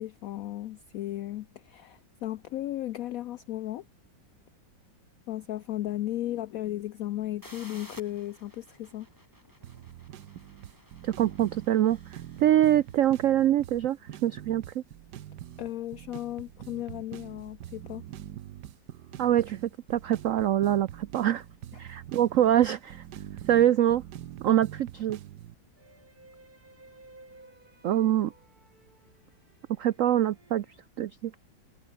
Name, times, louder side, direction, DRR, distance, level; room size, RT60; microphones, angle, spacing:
voice 1, 0.0-3.8 5.3-9.1 15.6-18.0, left 14 dB, 85° left, 0.7 m, -35 dB
sound 1, 7.4-13.1, equal, 10° right, 7.5 m, -54 dB
sound 2, 9.6-25.5, right 12 dB, 65° right, 1.4 m, -44 dB
voice 2, 11.0-14.8 19.2-21.4 21.8-23.0 23.5-24.0 24.4-25.2 27.8-28.3 29.8-30.7 31.0-31.3, right 11 dB, 80° right, 0.7 m, -24 dB
sound 3, 25.8-30.9, right 2 dB, 50° right, 7.0 m, -56 dB
omnidirectional pair, 2.0 m